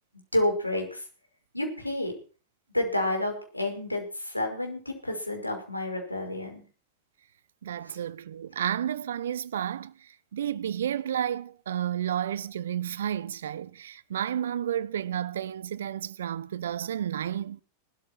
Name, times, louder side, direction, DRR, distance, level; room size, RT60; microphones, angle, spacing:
voice 1, 0.3-1.0 1.5-2.1 2.7-6.7 7.9-8.0, left 1 dB, 85° left, 5.3 m, -29 dB
voice 2, 7.6-9.9 10.3-17.6, right 10 dB, 65° right, 0.9 m, -31 dB
19.0 x 13.5 x 4.6 m
figure-of-eight pair, 90°, 0 cm